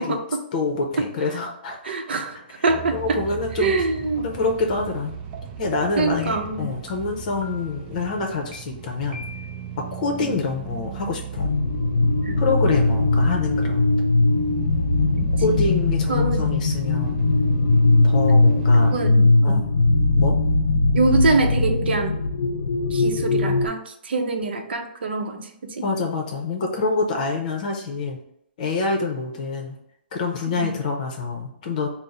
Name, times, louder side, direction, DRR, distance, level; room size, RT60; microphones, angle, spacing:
voice 1, 0.0-0.4 1.0-1.1 1.8-3.2 3.6-4.3 6.0-6.7 10.2-10.3 12.2-12.4 15.2-15.6 16.1-16.5 18.9-19.7 20.9-22.1 22.9-25.5 30.6-30.7, right 3 dB, 75° right, 5 dB, 0.6 m, -24 dB
voice 2, 0.5-1.9 2.5-2.6 2.9-3.7 4.2-5.2 5.6-9.2 9.8-11.5 12.4-13.9 15.4-17.2 18.0-19.0 19.4-19.7 20.1-20.4 25.8-28.2 28.6-29.8 30.1-31.9, left 3 dB, 45° left, 2 dB, 0.7 m, -26 dB
sound 1, 2.7-19.1, right 8 dB, 25° right, 0.3 m, -36 dB
sound 2, 5.3-5.4 5.9-6.2 6.9-7.0 7.4-7.9 8.5-8.6 9.1-9.7, left 1 dB, 40° right, 0.8 m, -41 dB
sound 3, 11.4-23.7, left 2 dB, 80° left, 0.6 m, -20 dB
3.6 x 2.0 x 4.1 m, 0.74 s
hypercardioid pair, 155°, 6 cm